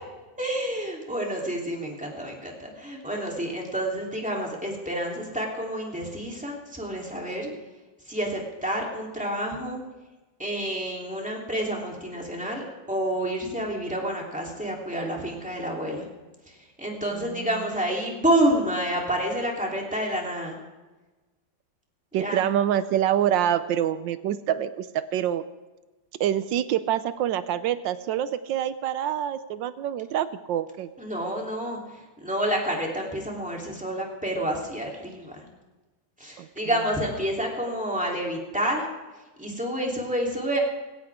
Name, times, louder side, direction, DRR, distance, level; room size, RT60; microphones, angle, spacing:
voice 1, 0.4-7.5 8.1-9.8 10.4-16.1 16.5-20.6 22.2-22.5 31.0-35.4 36.2-38.8 39.4-40.6, right 1 dB, 5° right, -1 dB, 3.2 m, -29 dB
voice 2, 22.1-25.4 26.2-30.9 36.4-36.5, right 10 dB, 85° right, 13 dB, 1.4 m, -26 dB
19.5 x 17.0 x 3.6 m, 1.2 s
omnidirectional pair, 2.0 m